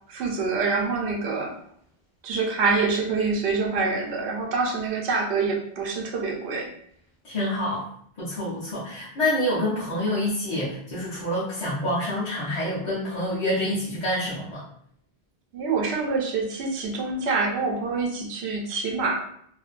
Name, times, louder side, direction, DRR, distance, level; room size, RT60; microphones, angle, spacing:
voice 1, 0.1-1.5 2.2-6.7 15.5-19.2, right 4 dB, 90° right, 0 dB, 0.9 m, -26 dB
voice 2, 7.2-7.8 8.2-14.6, left 1 dB, 45° left, -10 dB, 0.7 m, -27 dB
2.5 x 2.1 x 2.4 m, 0.66 s
omnidirectional pair, 1.1 m